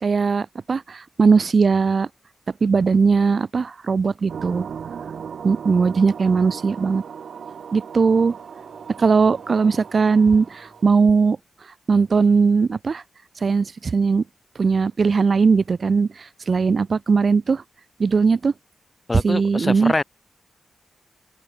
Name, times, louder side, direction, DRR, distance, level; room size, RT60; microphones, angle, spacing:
voice 1, 0.0-2.1 2.6-4.7 5.4-7.0 7.7-8.3 9.0-11.4 11.9-13.0 13.4-14.2 14.6-17.6 18.0-18.5 19.2-19.9, right 5 dB, 50° right, 0.3 m, -19 dB
sound 1, 4.3-10.9, right 7 dB, 75° right, 2.7 m, -37 dB
sound 2, 6.0-11.6, equal, ahead, 7.0 m, -56 dB
voice 2, 19.1-20.0, left 2 dB, 25° left, 0.4 m, -24 dB
open air
wide cardioid pair, 110°, 0 cm